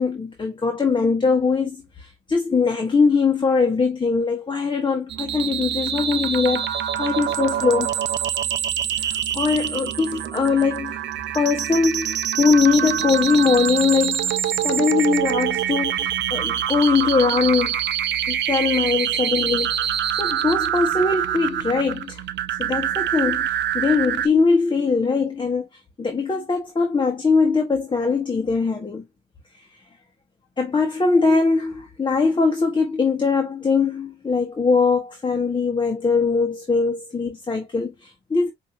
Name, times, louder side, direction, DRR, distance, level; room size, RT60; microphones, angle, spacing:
voice 1, 0.0-7.9 8.9-11.0 11.3-14.4 14.6-17.8 18.3-22.2 22.6-25.7 26.0-29.0 29.6-29.7 30.6-38.5, left 4 dB, 25° left, 1.2 m, -21 dB
sound 1, 5.1-24.3, right 10 dB, 65° right, 0.6 m, -25 dB
5.3 x 2.8 x 2.5 m
cardioid pair, 90°, 20 cm